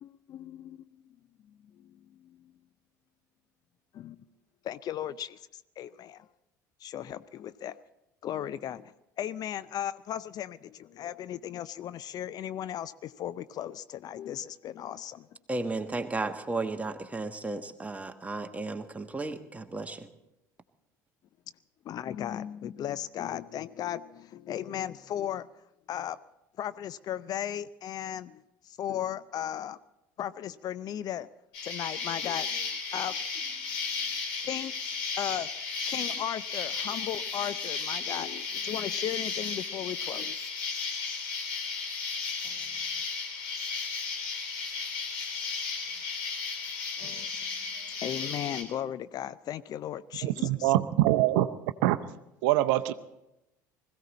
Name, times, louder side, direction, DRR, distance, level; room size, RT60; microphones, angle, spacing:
voice 1, 0.0-1.2 1.5-2.5 3.9-4.2 4.6-6.3 6.8-7.8 8.2-15.3 21.8-25.5 25.9-26.2 26.6-29.8 30.2-31.3 31.6-33.5 34.4-34.7 35.2-35.5 35.8-40.5 42.4-42.8 47.0-47.6 48.0-50.7, left 10 dB, 40° left, 15 dB, 0.5 m, -36 dB
voice 2, 15.5-20.1, right 3 dB, 15° right, 7 dB, 1.3 m, -34 dB
Insect, 31.5-48.6, left 5 dB, 60° left, 3.4 m, -34 dB
voice 3, 50.2-51.5 51.8-52.0 52.4-52.9, right 15 dB, 60° right, 11 dB, 0.6 m, -24 dB
21.0 x 15.5 x 4.2 m, 0.90 s
figure-of-eight pair, 60°, 10 cm